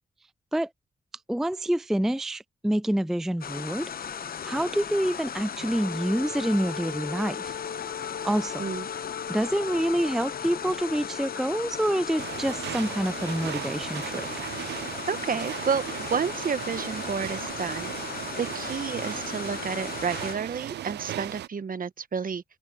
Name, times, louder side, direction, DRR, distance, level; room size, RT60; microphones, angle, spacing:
voice 1, 1.3-3.9 4.4-7.5 8.2-8.7 9.3-14.3, right 1 dB, ahead, 0.4 m, -27 dB
sound 1, 3.4-20.4, left 7 dB, 60° left, 0.8 m, -37 dB
Wind instrument woodwind instrument, 5.7-13.7, left 7 dB, 80° left, 1.7 m, -40 dB
sound 2, 12.2-21.5, right 12 dB, 80° right, 0.4 m, -37 dB
voice 2, 15.1-15.8 16.1-22.4, right 6 dB, 55° right, 1.2 m, -30 dB
cardioid pair, 60°, 17 cm